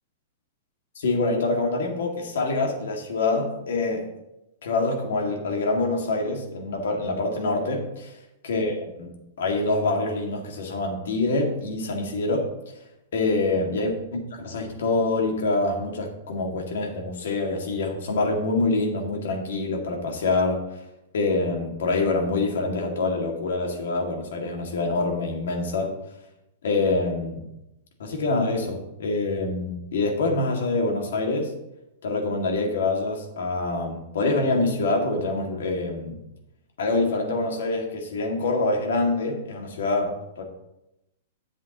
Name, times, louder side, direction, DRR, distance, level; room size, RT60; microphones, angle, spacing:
voice 1, 1.0-4.1 4.6-8.1 8.5-9.1 9.4-12.5 13.1-20.8 21.1-25.9 26.6-27.4 28.0-31.5 32.0-36.2 36.8-40.4, left 3 dB, 75° left, 1 dB, 2.2 m, -25 dB
11.0 x 7.4 x 3.0 m, 0.89 s
supercardioid pair, 175°, 0 cm